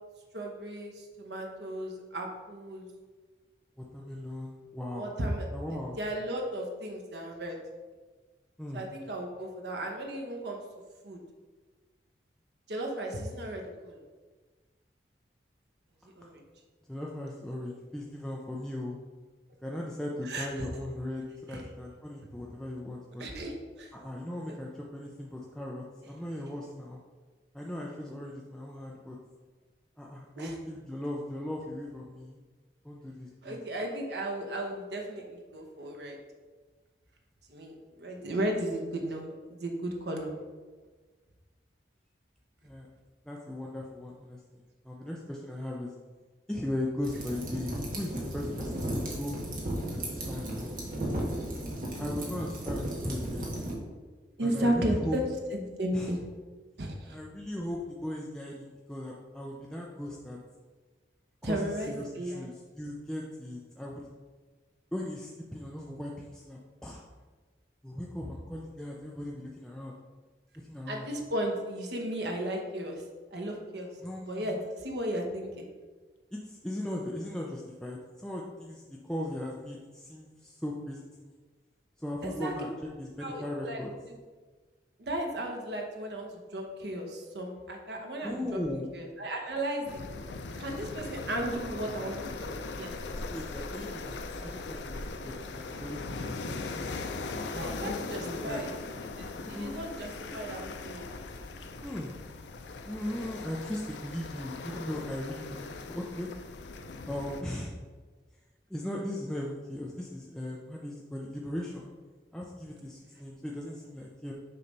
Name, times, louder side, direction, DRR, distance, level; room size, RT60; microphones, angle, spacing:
voice 1, 0.3-2.9 4.9-5.5 6.0-7.6 8.7-10.6 11.0-11.2 12.7-14.0 16.1-16.4 20.2-20.5 21.5-21.7 23.2-23.9 30.4-30.6 33.4-36.2 37.5-40.3 54.4-55.2 55.5-56.3 56.8-57.2 61.4-62.5 70.9-73.0 73.3-73.9 74.2-75.6 82.2-82.5 83.2-83.8 85.0-88.6 88.9-90.0 90.6-92.5 92.8-92.9 97.5-98.7 99.2-101.0, right 1 dB, 70° right, 2 dB, 1.0 m, -35 dB
voice 2, 3.9-5.1 5.5-6.0 8.6-8.8 16.9-19.0 19.6-23.2 23.9-27.0 27.5-29.2 30.0-32.4 32.8-33.6 42.6-42.9 43.3-45.9 46.5-49.4 49.9-50.7 52.0-53.5 54.4-55.2 55.9-56.1 57.1-60.4 61.4-64.1 64.9-67.0 67.8-69.9 70.7-71.1 74.0-74.5 76.3-81.4 82.0-82.7 83.0-83.9 88.2-88.9 93.3-96.6 97.5-98.6 99.3-99.8 101.8-102.1 102.9-106.3 107.0-107.7 108.7-111.9 112.3-114.3, left 1 dB, 5° left, -3 dB, 0.4 m, -38 dB
sound 1, 47.0-53.7, right 1 dB, 50° right, 1.4 m, -35 dB
sound 2, 89.9-107.4, left 3 dB, 85° left, 0.5 m, -39 dB
sound 3, 91.7-94.5 94.9-97.9, equal, 25° left, 1.0 m, -50 dB
6.7 x 3.2 x 5.3 m, 1.4 s
head